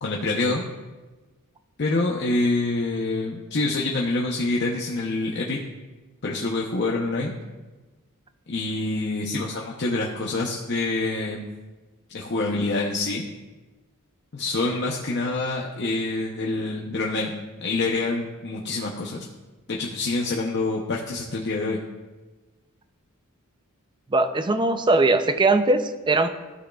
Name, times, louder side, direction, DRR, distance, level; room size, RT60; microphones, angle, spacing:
voice 1, 0.0-0.6 1.8-5.6 6.2-7.3 8.5-11.4 12.1-13.2 14.3-19.3 19.7-21.8, left 2 dB, 50° left, -2 dB, 0.7 m, -26 dB
voice 2, 24.1-26.3, right 2 dB, 20° right, 9 dB, 0.5 m, -20 dB
15.5 x 6.2 x 2.3 m, 1.2 s
head